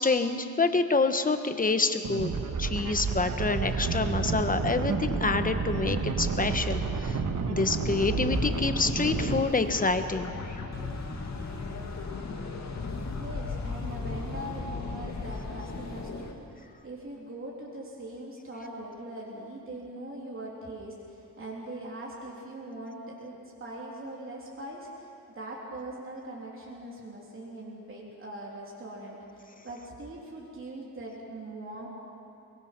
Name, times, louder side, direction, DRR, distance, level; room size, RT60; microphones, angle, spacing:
voice 1, 0.0-2.3 2.6-7.2 7.5-10.3, left 3 dB, 25° left, 8 dB, 1.2 m, -27 dB
sound 1, 2.0-9.4, right 4 dB, 65° right, 1.5 m, -30 dB
sound 2, 7.5-16.3, left 3 dB, 55° left, 2.2 m, -36 dB
voice 2, 13.1-25.1 25.3-31.9, right 1 dB, 40° right, -4 dB, 3.3 m, -41 dB
23.5 x 21.5 x 6.0 m, 2.6 s
wide cardioid pair, 115°, 32 cm